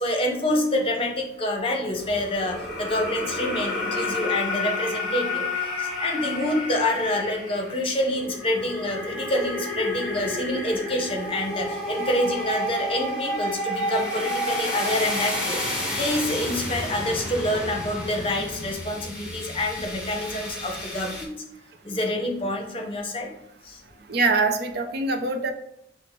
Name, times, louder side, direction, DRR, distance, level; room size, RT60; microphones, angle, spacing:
voice 1, 0.0-5.5 6.0-21.3 21.9-23.3, left 1 dB, 30° left, 1 dB, 0.8 m, -27 dB
sound 1, 2.0-21.2, left 1 dB, 5° right, 1.1 m, -31 dB
voice 2, 24.1-25.5, right 3 dB, 60° right, 6 dB, 0.5 m, -23 dB
6.0 x 2.1 x 4.2 m, 0.77 s
head